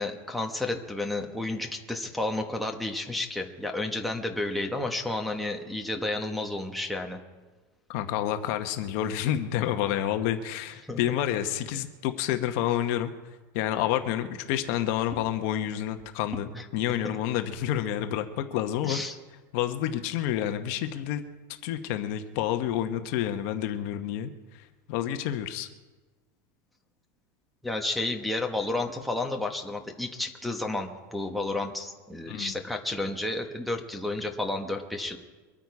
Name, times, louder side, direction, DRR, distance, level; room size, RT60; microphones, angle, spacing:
voice 1, 0.0-7.2 10.8-11.0 16.5-16.6 18.8-19.2 27.6-35.2, left 2 dB, ahead, 1 dB, 1.0 m, -31 dB
voice 2, 7.9-13.1 13.5-19.0 19.5-21.2 21.6-24.3 24.9-25.7 32.3-32.5, left 11 dB, 50° left, 8 dB, 1.0 m, -29 dB
23.5 x 8.8 x 4.8 m, 1.3 s
supercardioid pair, 160°, 10 cm